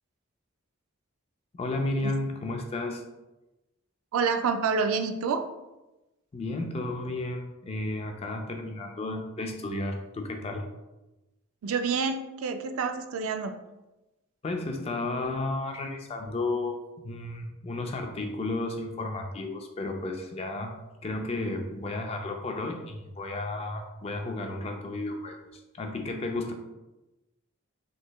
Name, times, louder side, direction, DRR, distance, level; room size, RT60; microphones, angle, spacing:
voice 1, 1.5-3.0 6.3-10.7 14.4-26.5, left 2 dB, 30° left, 3 dB, 0.3 m, -33 dB
voice 2, 4.1-5.5 11.6-13.6, right 5 dB, 85° right, 8 dB, 0.3 m, -28 dB
3.8 x 3.0 x 2.2 m, 1.0 s
head